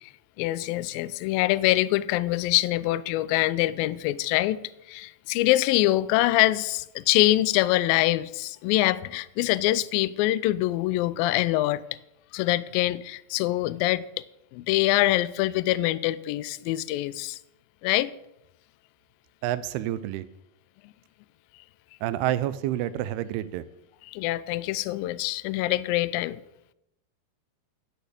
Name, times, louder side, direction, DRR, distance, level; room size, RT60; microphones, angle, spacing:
voice 1, 0.4-11.8 12.3-14.0 14.5-17.4 17.8-18.1 24.1-26.4, left 16 dB, 90° left, 2.0 m, -24 dB
voice 2, 19.4-20.3 22.0-23.6, right 13 dB, 85° right, 2.5 m, -28 dB
10.5 x 6.7 x 8.3 m
omnidirectional pair, 4.7 m